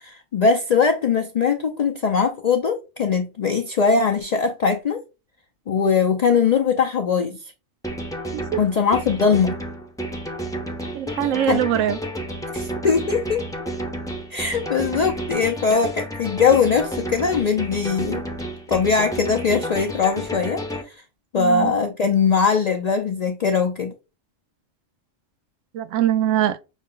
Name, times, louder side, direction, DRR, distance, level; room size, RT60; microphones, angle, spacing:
voice 1, 0.0-5.0 5.7-7.4 8.6-9.6 11.2-11.6 12.5-13.4 14.3-18.2 18.7-20.9 21.3-23.9, left 5 dB, 70° left, 0.4 m, -21 dB
sound 1, 7.8-20.8, equal, 5° left, 0.4 m, -31 dB
voice 2, 10.9-12.0 21.4-21.7 25.7-26.6, right 11 dB, 80° right, 0.9 m, -22 dB
6.1 x 2.1 x 3.7 m
omnidirectional pair, 1.3 m